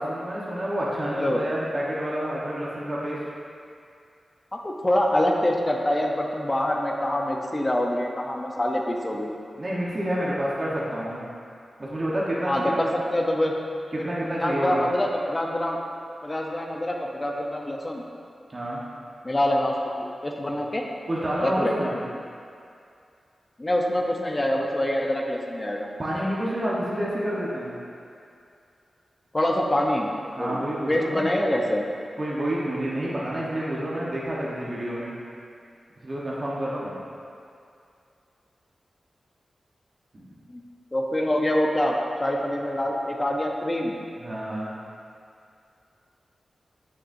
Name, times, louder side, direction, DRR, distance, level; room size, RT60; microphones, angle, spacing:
voice 1, 0.0-3.2 9.6-11.2 11.8-12.9 13.9-14.9 18.5-18.8 21.1-22.0 26.0-27.7 30.4-31.4 32.2-35.1 36.0-36.9 40.1-40.4 44.2-44.7, right 1 dB, 30° right, -7 dB, 1.1 m, -29 dB
voice 2, 4.5-9.4 12.5-13.5 14.0-14.1 14.4-15.8 16.2-18.0 19.2-19.8 20.2-20.8 21.4-21.8 23.6-25.9 29.3-30.1 30.4-31.9 40.5-40.6 40.9-43.9, left 1 dB, 20° left, 0 dB, 0.7 m, -25 dB
9.9 x 6.5 x 2.6 m, 2.4 s
wide cardioid pair, 165°, 0 cm